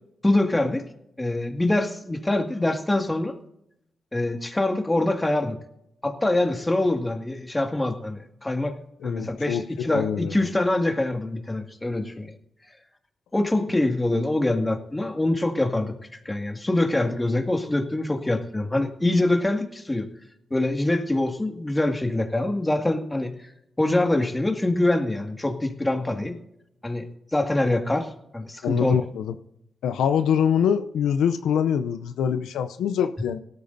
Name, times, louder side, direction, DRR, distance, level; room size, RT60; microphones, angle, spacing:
voice 1, 0.2-0.9 1.2-3.4 4.1-5.6 6.0-8.8 9.0-12.3 13.3-15.9 16.3-20.1 20.5-23.4 23.8-26.4 26.8-27.1 27.3-29.0, left 2 dB, 20° left, 5 dB, 2.0 m, -24 dB
voice 2, 9.0-10.4 28.6-29.3 29.8-33.4, left 8 dB, 90° left, 9 dB, 0.6 m, -24 dB
18.0 x 13.0 x 2.7 m, 0.79 s
supercardioid pair, 55°, 0 cm